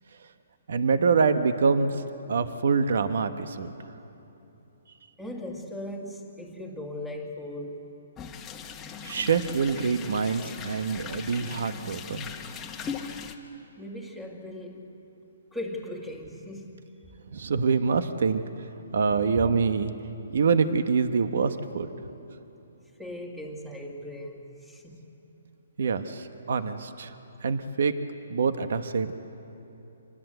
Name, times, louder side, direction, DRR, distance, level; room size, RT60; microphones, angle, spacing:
voice 1, 0.7-1.9 2.3-3.7 9.0-12.3 17.3-18.4 18.9-19.9 20.3-21.9 25.8-27.1 27.4-27.9 28.3-29.1, right 5 dB, 65° right, 10 dB, 1.2 m, -25 dB
voice 2, 5.2-7.8 13.8-14.9 15.5-16.8 19.1-19.5 23.0-25.0, left 1 dB, ahead, 1 dB, 2.1 m, -38 dB
sound 1, 8.2-13.4, left 6 dB, 15° left, 1.3 m, -39 dB
26.5 x 19.5 x 8.1 m, 2.9 s
hypercardioid pair, 155°, 0 cm